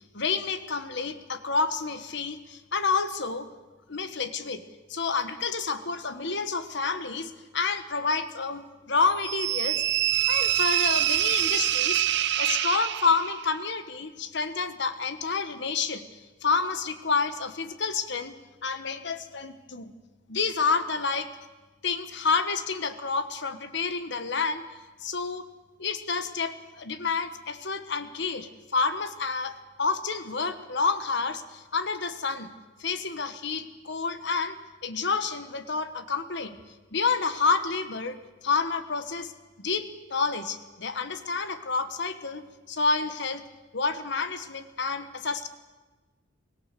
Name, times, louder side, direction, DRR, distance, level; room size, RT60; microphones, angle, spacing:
voice 1, 0.1-3.5 3.9-4.6 4.9-9.8 10.3-12.0 12.4-16.0 16.4-18.3 18.6-19.9 20.3-21.3 21.8-24.6 25.0-25.5 25.8-32.5 32.8-34.6 34.8-36.6 36.9-38.1 38.4-39.3 39.6-43.4 43.7-45.5, left 4 dB, 65° left, 10 dB, 1.3 m, -29 dB
sound 1, 9.2-13.4, right 12 dB, 60° right, 0.8 m, -25 dB
24.0 x 17.5 x 6.8 m, 1.2 s
head